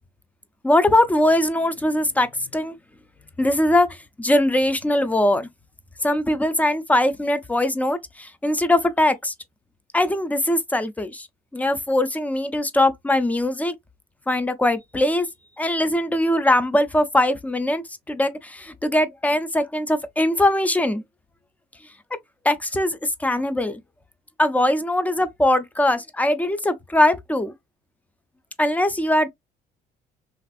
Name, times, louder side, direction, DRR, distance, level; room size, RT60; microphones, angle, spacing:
voice 1, 0.6-2.7 3.4-3.9 4.2-5.5 6.0-9.3 9.9-11.3 11.5-13.7 14.3-15.3 15.6-21.0 22.4-23.8 24.4-27.5 28.6-29.3, left 1 dB, 10° left, 0.4 m, -21 dB
3.3 x 2.5 x 2.3 m
cardioid pair, 110°, 17 cm